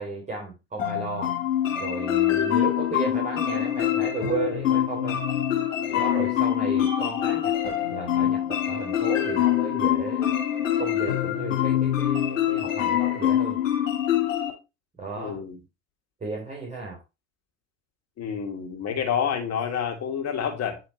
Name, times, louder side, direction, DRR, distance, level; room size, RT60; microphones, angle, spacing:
voice 1, 0.0-1.4 1.8-5.2 5.9-10.3 10.8-13.6 15.0-15.4 16.2-17.0, right 3 dB, 20° right, 3.4 m, -34 dB
sound 1, 0.8-14.5, left 11 dB, 80° left, 2.2 m, -25 dB
voice 2, 5.9-6.4 15.2-15.6 18.2-20.8, left 7 dB, 45° left, 2.5 m, -29 dB
9.4 x 4.2 x 4.4 m
hypercardioid pair, 75°, 38 cm